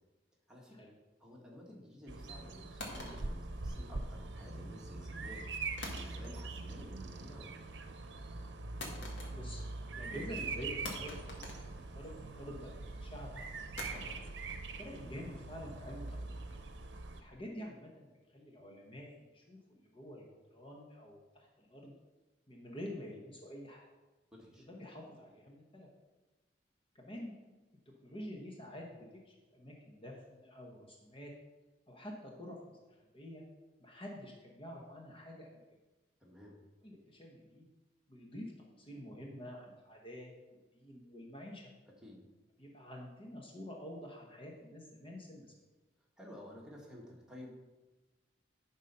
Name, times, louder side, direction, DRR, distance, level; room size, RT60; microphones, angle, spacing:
voice 1, 1.2-5.5 5.9-7.7 24.3-24.6 36.2-36.6 42.0-42.2 46.2-47.6, left 1 dB, 5° right, -3 dB, 1.6 m, -52 dB
Bird vocalization bird call bird song, 2.1-17.2, right 3 dB, 80° right, 0.7 m, -43 dB
sound 1, 2.8-4.2 5.8-6.6 6.9-7.4 8.8-9.7 10.0-10.1 10.8-12.4 13.8-16.8, left 2 dB, 80° left, 1.7 m, -48 dB
voice 2, 9.3-9.6 9.9-11.5 11.8-13.4 13.9-14.0 14.8-16.2 17.1-21.9 22.5-23.9 24.6-25.9 26.9-27.3 28.0-31.3 31.9-33.4 33.8-35.6 36.8-37.7 38.1-41.7 42.6-45.5, equal, 30° left, -1 dB, 1.0 m, -48 dB
10.5 x 4.0 x 5.4 m, 1.1 s
head